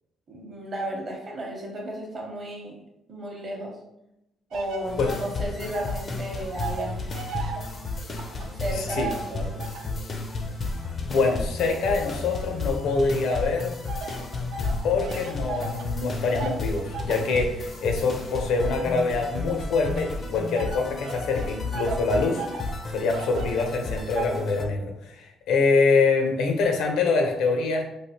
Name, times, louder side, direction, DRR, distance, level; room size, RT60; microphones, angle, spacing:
voice 1, 0.3-2.8 3.1-3.7 4.5-7.1 8.5-9.7, right 1 dB, 30° right, -1 dB, 0.7 m, -34 dB
sound 1, 4.5-6.1 6.3-10.0 10.6-12.7 13.3-24.3, right 5 dB, 75° right, 0.4 m, -38 dB
sound 2, 4.8-24.6, left 3 dB, 30° left, 0.4 m, -33 dB
voice 2, 8.7-9.1 11.0-13.7 14.8-22.5 22.9-27.8, left 4 dB, 80° left, 3 dB, 0.6 m, -25 dB
3.2 x 2.4 x 2.8 m, 0.86 s
cardioid pair, 170°, 0 cm